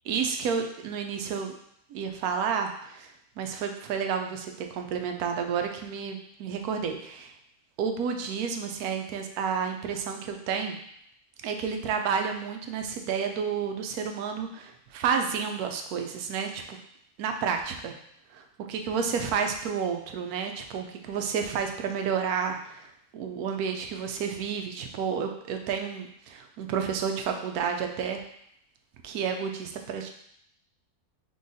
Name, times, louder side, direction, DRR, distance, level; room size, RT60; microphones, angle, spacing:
voice 1, 0.1-1.6 1.9-7.3 7.8-10.8 11.4-16.8 17.2-18.0 18.3-22.9 23.1-28.2 29.0-30.1, right 6 dB, 90° right, 4 dB, 1.1 m, -30 dB
3.8 x 3.4 x 4.0 m, 0.72 s
omnidirectional pair, 1.5 m